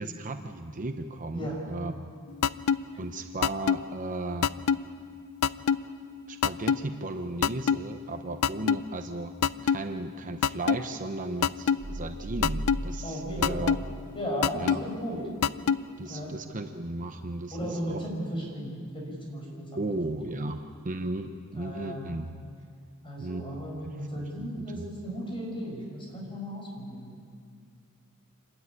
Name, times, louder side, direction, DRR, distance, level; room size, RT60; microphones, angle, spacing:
voice 1, 0.0-1.9 3.0-4.5 6.3-9.3 9.6-13.8 14.6-14.8 16.0-18.1 19.7-22.3 23.2-24.3 24.7-24.9, right 2 dB, 35° right, 7 dB, 0.8 m, -35 dB
sound 1, 2.4-2.8 3.4-3.8 4.4-4.8 5.4-5.8 6.4-6.8 7.4-7.8 8.4-8.8 9.4-9.8 10.4-10.8 11.4-11.8 12.4-12.8 13.4-13.8 14.4-14.8 15.4-15.8, left 7 dB, 85° left, 0.5 m, -22 dB
sound 2, 11.8-14.4 14.7-14.8, right 1 dB, 70° right, 1.6 m, -37 dB
voice 2, 13.0-13.7 14.1-15.2 16.1-16.3 17.5-19.8 21.5-22.2 23.0-27.1, equal, 25° left, -1 dB, 6.4 m, -35 dB
26.5 x 13.0 x 9.7 m, 2.2 s
head